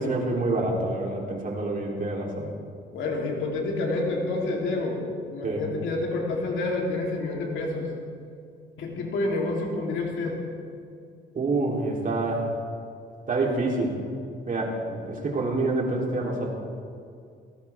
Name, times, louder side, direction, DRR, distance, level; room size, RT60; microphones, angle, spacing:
voice 1, 0.0-2.5 5.4-5.6 11.3-12.5 13.3-14.0 14.5-16.5, right 2 dB, 45° right, -2 dB, 3.7 m, -27 dB
voice 2, 2.9-7.9 8.8-10.4, left 2 dB, 80° left, -2 dB, 3.6 m, -28 dB
19.0 x 17.0 x 3.7 m, 2.3 s
cardioid pair, 90°, 20 cm